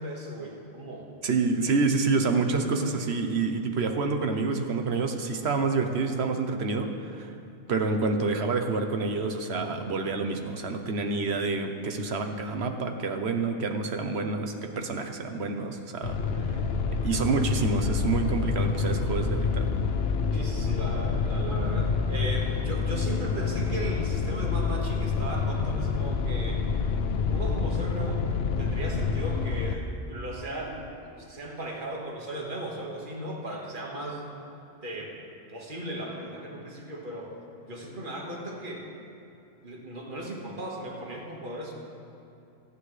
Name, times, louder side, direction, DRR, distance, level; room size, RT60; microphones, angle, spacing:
voice 1, 0.0-1.1 20.3-26.6 27.3-28.3 28.6-34.3 34.8-35.2 35.5-37.3 37.6-38.9 39.6-41.7, right 1 dB, 50° right, -2 dB, 1.9 m, -37 dB
voice 2, 1.2-7.3 7.7-16.2 17.0-19.7, right 4 dB, 75° right, 5 dB, 1.3 m, -28 dB
sound 1, 16.0-29.7, left 5 dB, 70° left, 0.9 m, -27 dB
25.5 x 9.6 x 3.3 m, 2.8 s
omnidirectional pair, 1.1 m